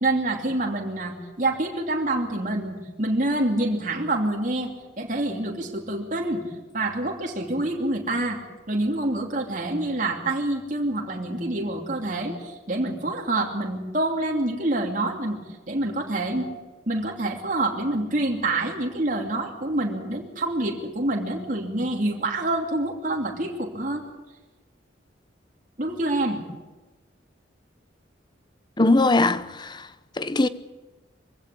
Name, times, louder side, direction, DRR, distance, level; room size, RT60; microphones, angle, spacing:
voice 1, 0.0-6.4 6.7-8.4 8.7-15.4 15.7-16.5 16.9-24.0 25.8-26.4, right 2 dB, 45° right, 2.9 m, -26 dB
voice 2, 28.8-29.9 30.2-30.5, left 2 dB, 25° left, 0.8 m, -21 dB
23.5 x 16.0 x 8.5 m
head